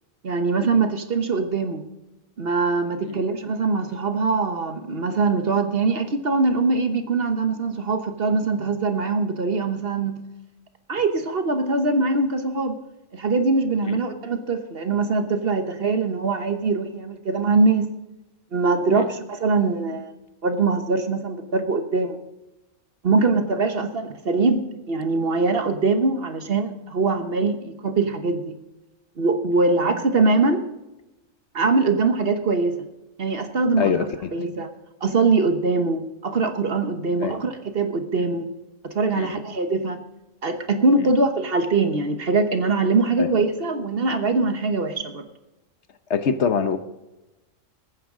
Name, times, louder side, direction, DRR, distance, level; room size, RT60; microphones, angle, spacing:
voice 1, 0.2-1.8 2.4-10.3 10.9-12.8 13.1-17.9 18.5-20.1 20.4-22.2 23.0-28.5 29.2-30.6 31.5-32.9 33.2-34.1 34.3-34.7 35.0-38.5 38.8-40.0 40.4-45.2, right 3 dB, 50° right, 1.3 m, -22 dB
voice 2, 33.8-34.3 37.2-37.4 39.1-39.3 43.2-43.3 46.1-46.8, left 6 dB, 65° left, 1.1 m, -24 dB
21.0 x 9.5 x 3.7 m
omnidirectional pair, 1.3 m